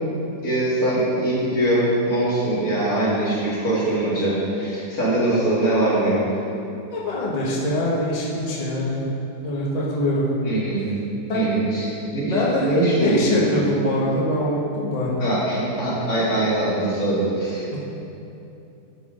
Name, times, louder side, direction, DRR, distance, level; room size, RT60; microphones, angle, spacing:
voice 1, 0.4-6.2 10.4-10.8 11.3-13.6 15.2-17.8, right 1 dB, 65° left, -8 dB, 2.7 m, -22 dB
voice 2, 6.9-9.0 9.4-10.3 11.3-11.6 12.3-15.1 17.7-17.8, left 1 dB, 25° left, -6 dB, 1.2 m, -23 dB
12.5 x 4.4 x 5.0 m, 2.9 s
omnidirectional pair, 1.7 m